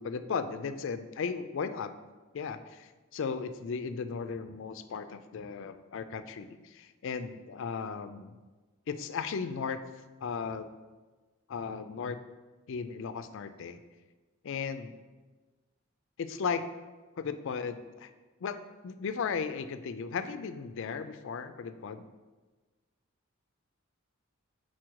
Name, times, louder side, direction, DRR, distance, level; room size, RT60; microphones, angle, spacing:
voice 1, 0.0-1.9 2.3-8.4 8.9-9.8 10.2-10.7 11.5-12.2 12.7-13.8 14.4-15.0 16.2-16.6 17.2-18.1 18.4-18.6 18.8-22.0, left 5 dB, 65° left, 10 dB, 0.4 m, -36 dB
6.2 x 4.3 x 4.6 m, 1.3 s
head